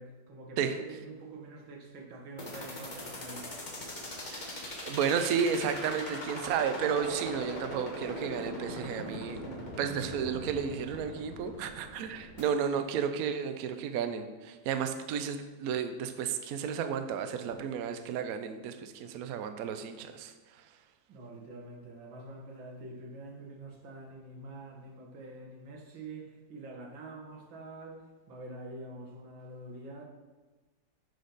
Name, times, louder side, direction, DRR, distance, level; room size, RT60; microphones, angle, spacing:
voice 1, 0.0-3.6 21.1-30.0, right 2 dB, 90° right, 1 dB, 2.0 m, -46 dB
sound 1, 2.4-12.4, left 1 dB, 30° left, 1.0 m, -41 dB
voice 2, 4.8-20.3, right 7 dB, 70° right, 8 dB, 0.9 m, -32 dB
9.2 x 5.1 x 3.9 m, 1.2 s
omnidirectional pair, 2.1 m